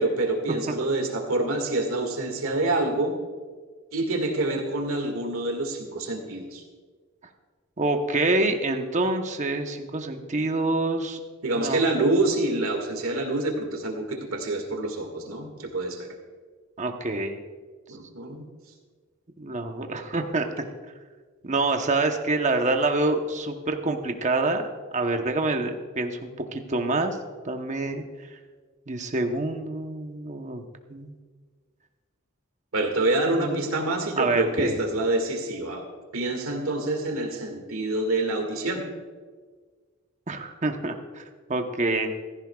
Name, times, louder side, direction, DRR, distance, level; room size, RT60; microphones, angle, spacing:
voice 1, 0.0-3.1 3.9-6.6 11.4-16.1 17.9-18.4 32.7-35.8 36.1-38.8, right 2 dB, 85° right, 3 dB, 2.0 m, -26 dB
voice 2, 7.8-11.2 11.6-11.8 16.8-17.4 19.4-20.5 21.4-27.2 27.4-28.0 28.9-31.1 33.3-33.7 34.2-34.8 40.3-41.2 41.5-42.1, right 2 dB, 35° right, 5 dB, 1.0 m, -26 dB
16.0 x 14.5 x 2.4 m, 1.5 s
head